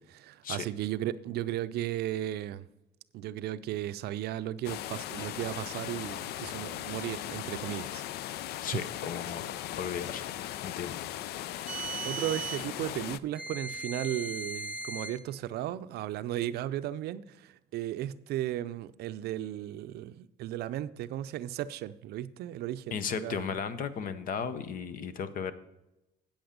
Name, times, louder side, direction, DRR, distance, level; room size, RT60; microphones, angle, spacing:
voice 1, 0.0-2.7 3.1-8.0 8.3-8.4 12.0-23.6, right 13 dB, 70° right, 0.5 m, -35 dB
sound 1, 4.6-13.2, left 13 dB, 75° left, 0.4 m, -38 dB
voice 2, 8.6-10.3 10.6-11.0 22.9-25.5, left 7 dB, 55° left, 0.8 m, -35 dB
sound 2, 11.7-12.7 13.4-15.2, right 4 dB, 5° right, 1.0 m, -38 dB
8.7 x 7.9 x 5.1 m
cardioid pair, 110°, 17 cm